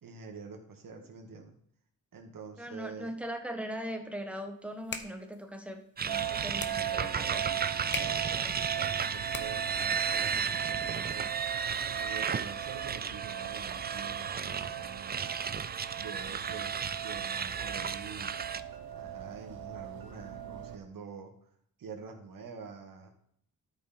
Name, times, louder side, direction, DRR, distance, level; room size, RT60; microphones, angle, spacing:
voice 1, 0.0-1.6 2.1-3.1 7.9-11.3 11.9-15.2 16.0-16.7 17.0-18.4 18.9-21.5 21.8-23.1, right 5 dB, 70° right, 3 dB, 2.0 m, -46 dB
voice 2, 2.6-7.5, equal, 5° right, 5 dB, 1.3 m, -40 dB
sound 1, 4.6-9.8, left 4 dB, 30° left, 0.9 m, -44 dB
sound 2, 6.0-18.6, right 6 dB, 30° right, 0.4 m, -34 dB
sound 3, 6.1-20.8, right 11 dB, 85° right, 1.1 m, -40 dB
13.0 x 5.5 x 4.3 m, 0.67 s
wide cardioid pair, 120°, 35 cm